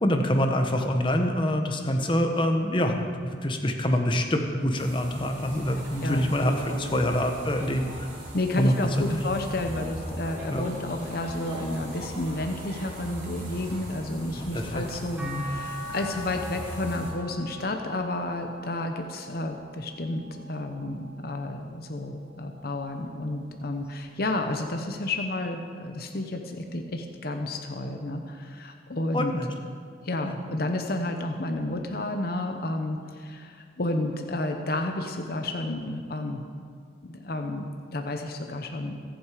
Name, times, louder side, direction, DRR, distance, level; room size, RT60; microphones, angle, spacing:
voice 1, 0.0-8.1 8.6-9.2 10.5-10.6 14.3-14.8 15.2-15.4 29.1-29.5 30.2-30.4, equal, 25° left, 4 dB, 1.1 m, -26 dB
sound 1, 4.8-17.1, right 1 dB, 75° right, 4.6 m, -39 dB
voice 2, 6.0-6.4 8.3-29.4 30.0-36.4 37.0-39.0, left 2 dB, 50° left, 4 dB, 0.9 m, -31 dB
sound 2, 15.2-21.5 22.0-23.4 24.8-24.9, equal, 5° right, 2.3 m, -43 dB
23.5 x 7.9 x 5.0 m, 2.2 s
head